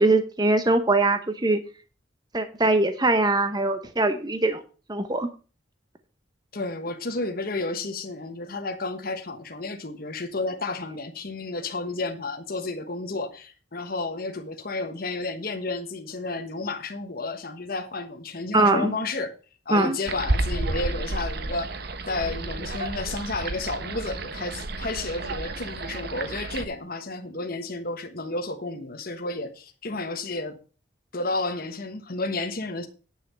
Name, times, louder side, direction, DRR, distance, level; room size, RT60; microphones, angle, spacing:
voice 1, 0.0-1.6 2.3-4.6 4.9-5.3 18.5-18.9 19.7-20.0, right 2 dB, 20° right, 0.8 m, -22 dB
voice 2, 6.5-19.3 19.6-21.7 22.1-30.6 31.1-32.9, left 3 dB, 50° left, 1.2 m, -31 dB
sound 1, 20.1-26.6, right 2 dB, 55° right, 1.0 m, -31 dB
10.0 x 5.7 x 6.7 m
head